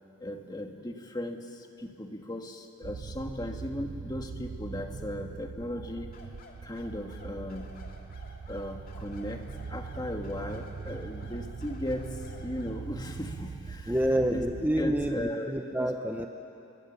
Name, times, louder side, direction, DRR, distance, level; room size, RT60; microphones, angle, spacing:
voice 1, 0.2-6.1 6.6-7.7 8.5-13.9 14.3-14.4 14.8-15.5 15.8-16.2, left 1 dB, 20° left, 3 dB, 1.6 m, -37 dB
sound 1, 2.8-15.3, right 5 dB, 65° right, 0.5 m, -41 dB
sound 2, 6.1-12.8, left 2 dB, 45° left, 2.5 m, -53 dB
voice 2, 13.9-16.3, right 1 dB, 10° right, 3 dB, 0.9 m, -28 dB
27.5 x 23.0 x 7.0 m, 2.7 s
head